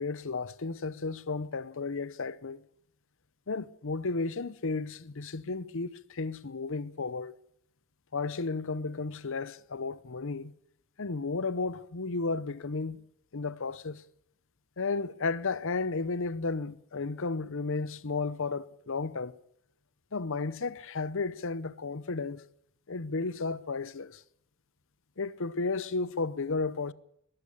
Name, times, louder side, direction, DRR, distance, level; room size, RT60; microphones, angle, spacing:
voice 1, 0.0-2.6 3.5-7.3 8.1-10.5 11.0-13.0 13.3-14.0 14.8-19.4 20.1-22.4 22.9-24.2 25.2-26.9, left 3 dB, 65° left, 0.9 m, -33 dB
21.0 x 15.0 x 8.5 m
head